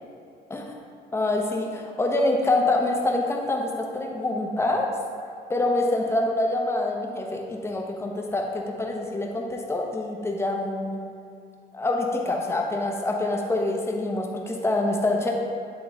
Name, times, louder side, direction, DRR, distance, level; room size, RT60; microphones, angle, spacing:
voice 1, 1.1-4.9 5.5-11.0 11.7-15.3, left 2 dB, 15° left, 0 dB, 0.9 m, -26 dB
9.1 x 3.8 x 3.8 m, 2.5 s
cardioid pair, 110°, 17 cm